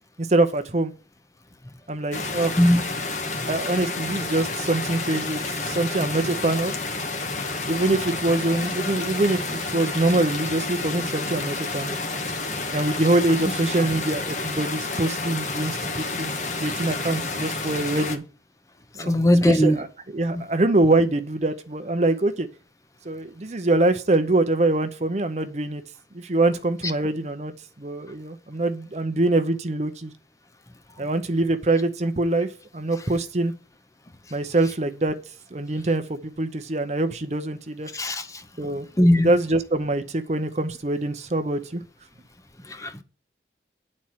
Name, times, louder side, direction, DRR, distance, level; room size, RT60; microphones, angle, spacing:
voice 1, 0.3-0.9 1.9-2.6 3.5-6.7 7.7-12.0 12.7-16.3 16.6-18.2 19.0-19.1 19.4-22.5 23.0-25.8 26.1-27.5 27.8-30.1 31.0-32.5 32.7-33.5 34.3-35.2 35.5-37.9 38.6-38.9 39.2-41.8, right 2 dB, 40° right, 0.7 m, -24 dB
sound 1, 2.1-18.2, left 3 dB, 40° left, 1.2 m, -30 dB
voice 2, 19.1-19.8 37.9-38.3 39.0-39.3 42.8-43.0, left 1 dB, 20° left, 0.8 m, -18 dB
9.9 x 4.3 x 7.6 m
head